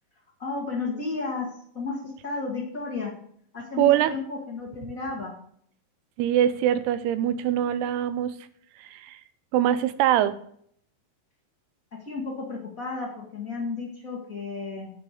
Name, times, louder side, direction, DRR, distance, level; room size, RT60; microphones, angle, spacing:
voice 1, 0.4-3.1 3.5-5.3 12.0-14.9, left 4 dB, 65° left, -2 dB, 0.8 m, -33 dB
voice 2, 3.8-4.2 6.2-8.4 8.8-9.2 9.5-10.4, right 11 dB, 80° right, 14 dB, 2.5 m, -23 dB
8.4 x 6.8 x 6.5 m, 0.64 s
omnidirectional pair, 4.8 m